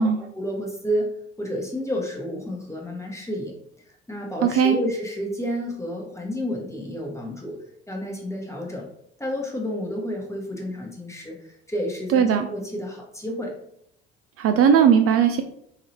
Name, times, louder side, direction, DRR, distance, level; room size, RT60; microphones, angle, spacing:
voice 1, 0.0-3.5 3.9-7.6 7.9-8.9 9.2-13.6, equal, 10° left, -1 dB, 1.3 m, -30 dB
voice 2, 4.4-4.8 12.1-12.5 14.4-15.4, right 7 dB, 50° right, 6 dB, 0.4 m, -18 dB
3.8 x 2.8 x 2.9 m, 0.71 s
hypercardioid pair, 60°, 30 cm